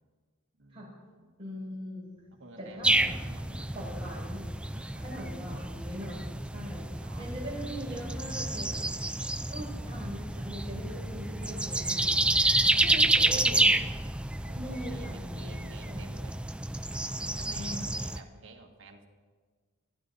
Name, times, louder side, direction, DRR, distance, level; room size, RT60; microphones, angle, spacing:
voice 1, 0.6-1.4 2.3-4.2 4.7-5.7 6.8-7.3 9.2-9.9 12.4-13.2 14.4-16.4 16.9-19.1, right 2 dB, 65° right, 3 dB, 1.7 m, -52 dB
voice 2, 1.4-2.1 2.6-3.1 3.7-4.5 5.0-8.9 9.4-12.2 12.8-13.7 14.5-16.2 17.4-18.0, equal, 30° right, -5 dB, 6.0 m, -41 dB
Thunder, 2.0-12.6, left 1 dB, 25° left, 5.4 m, -60 dB
sound 1, 2.8-18.2, right 2 dB, 5° right, 0.4 m, -29 dB
28.0 x 11.0 x 4.0 m, 1.5 s
head